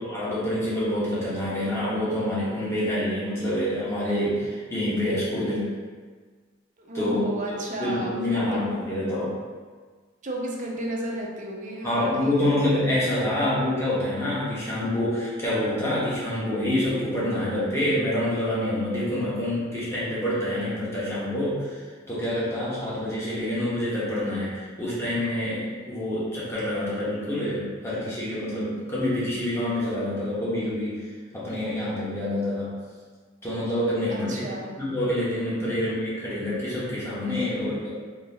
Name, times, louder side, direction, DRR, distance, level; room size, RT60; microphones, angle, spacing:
voice 1, 0.0-5.7 6.9-9.4 11.8-31.0 31.3-32.8 33.4-34.4 34.8-37.9, left 1 dB, 15° left, -9 dB, 1.1 m, -27 dB
voice 2, 6.8-8.8 10.2-12.6 34.1-34.7 35.6-35.7, right 1 dB, 40° right, -1 dB, 0.6 m, -33 dB
4.0 x 2.9 x 2.7 m, 1.5 s
head